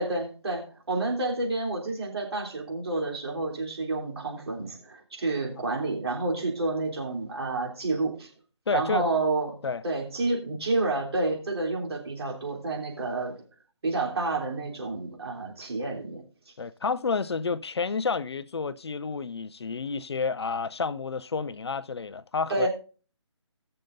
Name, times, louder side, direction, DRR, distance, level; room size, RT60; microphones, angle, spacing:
voice 1, 0.0-8.3 8.7-9.6 9.8-13.4 13.8-16.2 22.5-22.7, right 2 dB, 55° right, 3.4 m, -29 dB
voice 2, 8.7-9.1 9.6-9.8 16.6-22.7, left 5 dB, 55° left, 0.6 m, -30 dB
19.0 x 6.7 x 2.6 m
figure-of-eight pair, 155°, 16 cm